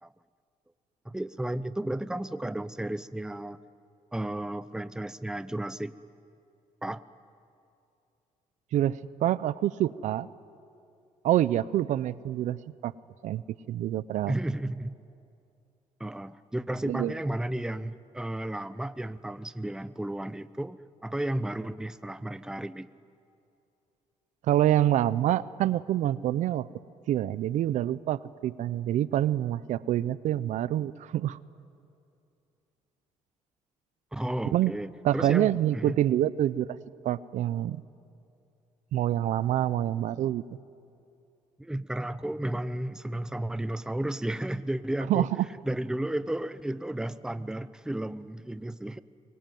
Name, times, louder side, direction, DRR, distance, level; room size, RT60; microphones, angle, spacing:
voice 1, 1.0-3.6 4.1-5.9 6.8-7.0 14.3-14.9 16.0-22.9 34.1-36.0 41.6-45.3 45.6-49.0, right 1 dB, 5° right, 14 dB, 0.7 m, -33 dB
voice 2, 8.7-10.3 11.2-12.9 13.2-13.4 13.7-14.3 16.9-17.1 24.5-26.7 27.1-31.4 34.5-34.7 35.0-36.8 37.0-37.8 38.9-40.4 45.1-45.3, right 12 dB, 70° right, 18 dB, 0.6 m, -26 dB
23.5 x 23.0 x 9.3 m, 2.6 s
cardioid pair, 95°, 13 cm